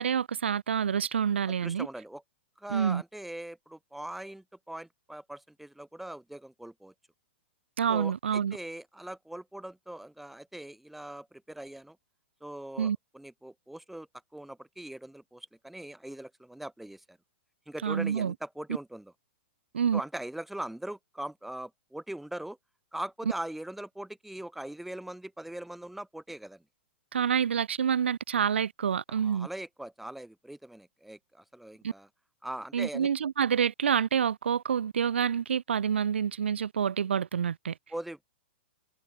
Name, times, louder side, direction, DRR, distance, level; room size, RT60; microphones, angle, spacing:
voice 1, 0.0-1.9 2.7-3.0 7.8-8.6 12.8-13.0 17.8-18.3 19.7-20.0 27.1-29.5 31.8-31.9 32.7-37.7, right 8 dB, 75° right, 2.5 m, -27 dB
voice 2, 1.5-2.2 2.6-6.9 7.9-12.0 12.4-17.2 17.7-19.1 19.9-22.6 22.9-26.6 29.1-32.1 32.4-33.1 37.9-38.2, right 1 dB, 5° right, 4.6 m, -41 dB
hypercardioid pair, 115°, 6 cm